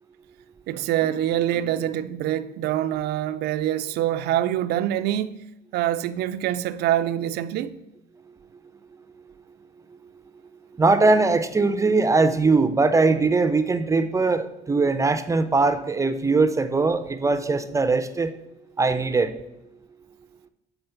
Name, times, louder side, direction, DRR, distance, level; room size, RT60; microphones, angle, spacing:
voice 1, 0.7-5.4 5.7-7.8, right 12 dB, 75° right, 0.4 m, -25 dB
voice 2, 10.8-18.3 18.8-19.3, right 3 dB, 20° right, 0.4 m, -21 dB
7.8 x 3.8 x 5.7 m
cardioid pair, 110°, 17 cm